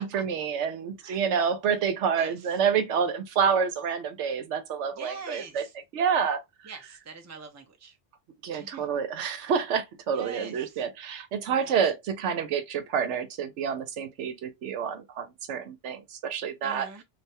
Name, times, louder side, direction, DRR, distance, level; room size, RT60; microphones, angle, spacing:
voice 1, 0.0-5.7 5.9-6.4 8.4-17.0, right 7 dB, 85° right, 1.0 m, -28 dB
voice 2, 4.9-5.7 6.7-7.9 8.5-8.8 10.1-10.6 11.6-11.8 16.6-17.0, right 4 dB, 20° right, 0.5 m, -43 dB
3.3 x 2.4 x 2.7 m
omnidirectional pair, 1.2 m